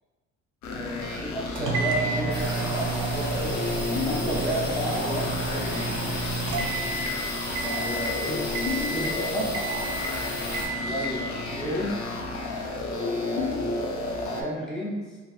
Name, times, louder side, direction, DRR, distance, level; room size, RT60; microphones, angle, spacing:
sound 1, 0.6-14.4, left 3 dB, 70° left, 0.4 m, -32 dB
voice 1, 0.6-3.6 4.1-6.1 7.6-8.4 8.8-9.5 10.8-12.0 12.9-13.9 14.2-15.2, equal, ahead, -6 dB, 0.5 m, -33 dB
sound 2, 1.5-7.2 7.5-8.1 8.5-9.2 9.5-10.1 10.5-11.2, right 3 dB, 85° right, 0.5 m, -31 dB
sound 3, 2.3-10.7, left 1 dB, 90° left, 1.4 m, -35 dB
2.5 x 2.3 x 2.4 m, 1.3 s
cardioid pair, 90°, 30 cm